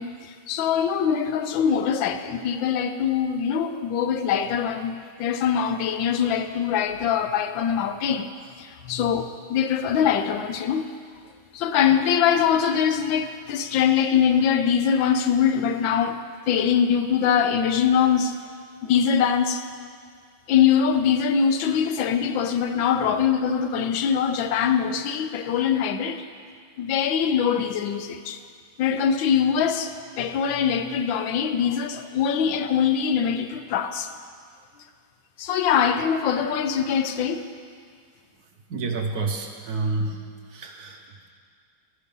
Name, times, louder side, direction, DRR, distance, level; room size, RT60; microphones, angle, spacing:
voice 1, 0.0-8.3 8.6-11.0 11.5-18.4 18.8-19.6 20.5-26.2 26.8-28.4 28.8-34.1 35.4-37.5, left 7 dB, 80° left, 9 dB, 1.4 m, -23 dB
voice 2, 38.4-41.3, right 3 dB, 60° right, 3 dB, 1.3 m, -30 dB
12.0 x 9.8 x 5.4 m, 2.1 s
omnidirectional pair, 2.1 m